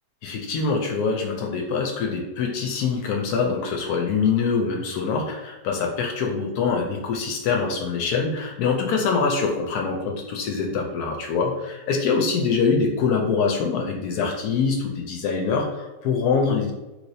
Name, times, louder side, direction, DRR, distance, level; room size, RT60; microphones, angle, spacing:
voice 1, 0.2-16.7, left 5 dB, 80° left, 2 dB, 1.1 m, -24 dB
3.2 x 3.0 x 2.6 m, 1.1 s
omnidirectional pair, 1.6 m